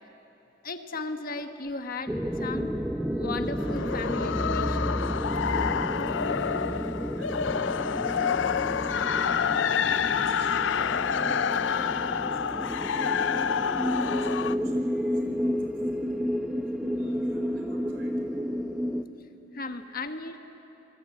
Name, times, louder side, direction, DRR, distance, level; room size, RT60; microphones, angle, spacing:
voice 1, 0.6-2.7 3.1-5.0 19.5-20.4, left 3 dB, 50° left, 7 dB, 1.4 m, -36 dB
sound 1, 2.1-19.0, equal, 5° right, 0.8 m, -31 dB
sound 2, 3.5-14.6, left 7 dB, 70° left, 0.5 m, -28 dB
voice 2, 6.1-6.7 7.1-8.2 8.4-9.6 10.2-12.8 13.1-13.7 14.1-16.1 16.9-18.1, right 1 dB, 65° right, 2 dB, 4.9 m, -51 dB
28.0 x 21.0 x 9.0 m, 3.0 s
head